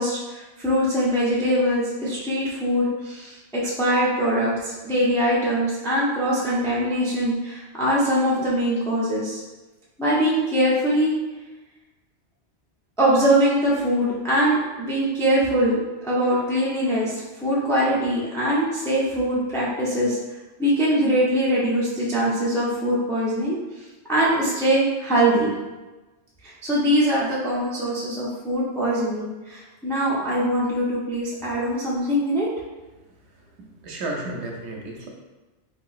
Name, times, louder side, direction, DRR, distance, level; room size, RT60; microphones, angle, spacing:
voice 1, 0.0-9.4 10.0-11.1 13.0-20.2 20.6-23.6 24.1-25.5 26.4-32.5, equal, 5° left, -7 dB, 0.4 m, -22 dB
voice 2, 33.3-35.1, right 2 dB, 75° right, 0 dB, 0.9 m, -33 dB
3.5 x 2.8 x 2.4 m, 1.1 s
omnidirectional pair, 1.2 m